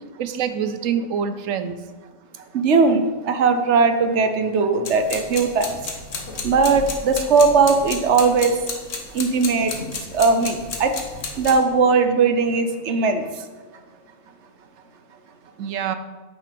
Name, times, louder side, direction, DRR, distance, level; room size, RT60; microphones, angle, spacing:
voice 1, 0.2-1.8 15.6-15.9, right 7 dB, 90° right, 10 dB, 1.1 m, -25 dB
voice 2, 2.5-5.7 6.4-8.5 9.1-9.7 10.1-10.9 11.4-13.2, right 4 dB, 65° right, 7 dB, 1.1 m, -18 dB
sound 1, 4.8-11.5, left 4 dB, 75° left, 1.5 m, -33 dB
8.8 x 6.1 x 5.1 m, 1.3 s
omnidirectional pair, 1.3 m